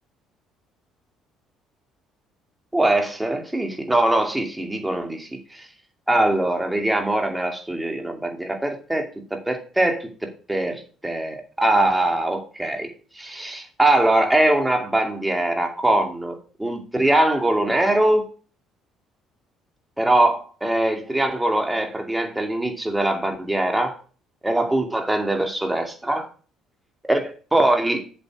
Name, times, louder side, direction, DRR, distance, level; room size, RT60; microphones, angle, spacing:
voice 1, 2.7-5.7 6.1-9.1 9.3-12.9 13.2-18.3 20.0-24.0 24.4-26.3 27.0-28.1, right 1 dB, 10° right, 2.4 m, -22 dB
7.6 x 7.6 x 4.7 m
supercardioid pair, 90°, 0 cm